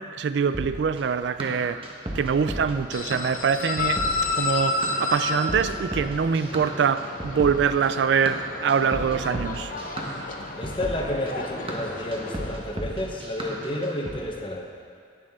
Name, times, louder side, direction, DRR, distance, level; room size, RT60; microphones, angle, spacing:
voice 1, 0.0-1.8 2.1-4.0 4.3-9.7, right 6 dB, 70° right, 0.3 m, -24 dB
sound 1, 0.5-14.2, right 1 dB, 30° right, 1.2 m, -35 dB
nyc esb hotdogstand, 2.9-12.5, left 3 dB, 50° left, 0.8 m, -31 dB
voice 2, 10.6-14.7, left 1 dB, 30° left, 1.1 m, -31 dB
17.5 x 6.3 x 3.7 m
head